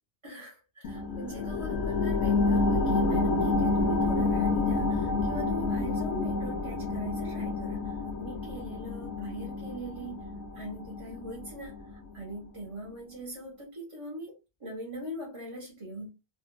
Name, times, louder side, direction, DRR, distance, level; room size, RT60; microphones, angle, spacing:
voice 1, 0.2-10.2 10.5-16.1, equal, 30° right, 0.9 m, -41 dB
sound 1, 0.8-11.9 12.4-12.5, left 3 dB, 80° left, 0.8 m, -29 dB
2.7 x 2.2 x 2.2 m
omnidirectional pair, 1.1 m